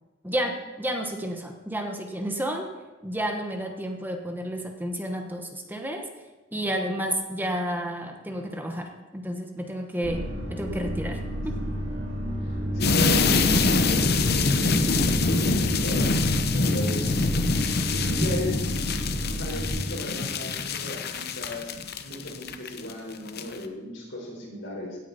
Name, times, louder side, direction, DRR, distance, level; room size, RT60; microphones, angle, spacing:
voice 1, 0.2-2.7 3.0-6.0 6.5-11.2 11.4-11.6, right 1 dB, 10° right, 3 dB, 1.1 m, -31 dB
sound 1, 10.0-19.7, equal, 45° right, 3.2 m, -31 dB
voice 2, 12.4-14.8 15.2-17.3 17.9-18.6 19.3-21.7 22.0-25.0, left 1 dB, 75° left, -1 dB, 4.2 m, -35 dB
sound 2, 12.8-22.9 23.3-23.6, left 3 dB, 55° left, 0.8 m, -25 dB
16.5 x 9.2 x 4.1 m, 1.1 s
head